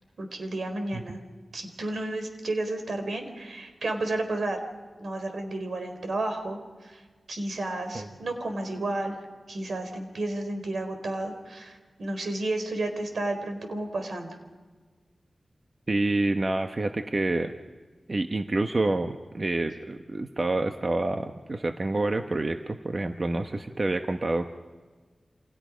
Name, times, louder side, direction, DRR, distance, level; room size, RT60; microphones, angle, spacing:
voice 1, 0.2-1.2 1.5-4.6 5.0-7.0 7.3-9.2 9.5-14.4, right 2 dB, 80° right, 6 dB, 4.3 m, -32 dB
voice 2, 15.9-17.5 18.1-24.5, right 2 dB, 40° right, 5 dB, 1.1 m, -28 dB
29.0 x 28.0 x 5.2 m, 1.4 s
wide cardioid pair, 85°, 0 cm